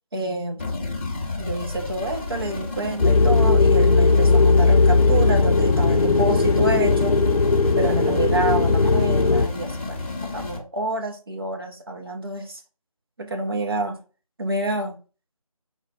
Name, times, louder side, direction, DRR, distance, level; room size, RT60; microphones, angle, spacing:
voice 1, 0.1-0.6 1.4-7.2 7.8-10.0 10.3-12.6 13.2-14.0 14.4-15.0, right 2 dB, 40° right, 0.9 m, -28 dB
sound 1, 0.6-10.6, left 3 dB, 20° left, 0.6 m, -32 dB
sound 2, 3.0-9.5, left 3 dB, 80° left, 0.5 m, -17 dB
4.6 x 2.2 x 4.2 m
figure-of-eight pair, 160°, 19 cm